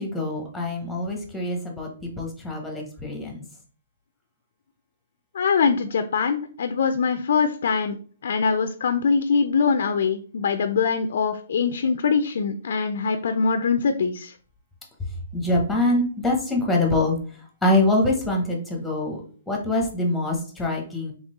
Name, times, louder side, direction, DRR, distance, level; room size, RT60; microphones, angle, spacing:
voice 1, 0.0-3.4 15.3-17.2 17.6-21.1, left 2 dB, 5° left, 0 dB, 0.8 m, -24 dB
voice 2, 5.3-8.0 8.2-14.3, left 5 dB, 60° left, 9 dB, 0.4 m, -23 dB
3.7 x 3.0 x 4.0 m, 0.43 s
hypercardioid pair, 170°, 0 cm